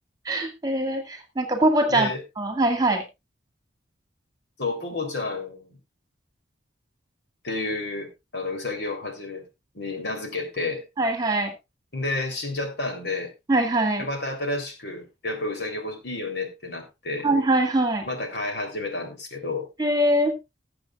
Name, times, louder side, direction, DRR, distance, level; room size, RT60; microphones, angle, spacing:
voice 1, 0.3-2.1 2.4-3.0 11.0-11.5 13.5-14.1 17.2-18.1 19.8-20.4, right 1 dB, 20° right, 5 dB, 2.0 m, -22 dB
voice 2, 1.9-2.2 4.6-5.8 7.4-9.4 9.7-10.8 11.9-13.3 14.0-17.3 18.0-19.7, left 2 dB, 60° left, 3 dB, 3.4 m, -30 dB
19.5 x 7.8 x 2.4 m, 0.23 s
head